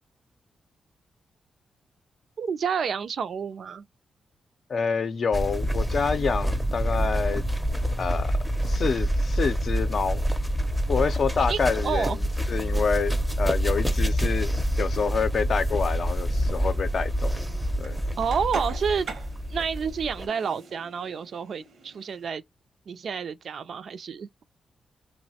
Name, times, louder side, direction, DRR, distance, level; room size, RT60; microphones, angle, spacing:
voice 1, 2.4-3.8 11.4-12.2 18.2-19.1 19.5-22.4 22.9-24.3, right 6 dB, 65° right, 0.4 m, -29 dB
voice 2, 4.7-7.5 8.0-8.3 8.6-10.2 10.9-12.2 12.5-14.5 14.8-17.3 17.8-18.0, left 5 dB, 55° left, 0.5 m, -27 dB
sound 1, 5.3-20.3, equal, ahead, 0.6 m, -27 dB
sound 2, 16.1-22.3, right 4 dB, 80° right, 0.8 m, -44 dB
3.1 x 2.1 x 2.8 m
wide cardioid pair, 120°, 0 cm